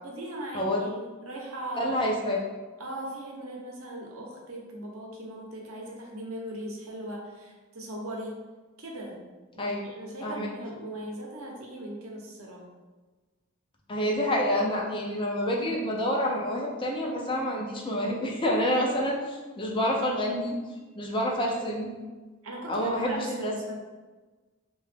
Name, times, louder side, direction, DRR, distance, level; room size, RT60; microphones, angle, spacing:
voice 1, 0.0-1.9 2.8-8.4 8.8-9.2 9.6-12.7 22.4-23.8, right 1 dB, 85° right, -1 dB, 0.7 m, -39 dB
voice 2, 1.8-2.4 9.6-9.8 10.2-10.5 13.9-20.6 20.9-21.9 22.7-23.5, equal, 25° left, -1 dB, 0.4 m, -28 dB
2.8 x 2.3 x 3.3 m, 1.3 s
head